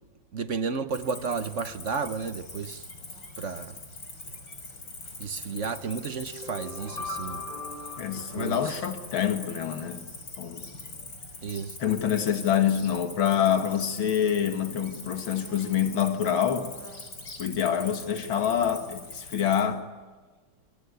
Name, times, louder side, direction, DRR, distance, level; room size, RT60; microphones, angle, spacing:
voice 1, 0.3-2.8 3.4-3.8 5.2-7.4 8.1-8.8 11.4-11.8, right 5 dB, 45° right, 1.2 m, -32 dB
Cricket, 0.9-19.6, left 3 dB, 65° left, 6.0 m, -43 dB
sound 1, 6.3-9.4, left 3 dB, 20° left, 6.9 m, -40 dB
voice 2, 8.0-10.1 10.4-10.6 11.8-16.7 17.4-19.8, left 9 dB, 80° left, 2.7 m, -26 dB
25.5 x 25.0 x 8.2 m
omnidirectional pair, 2.2 m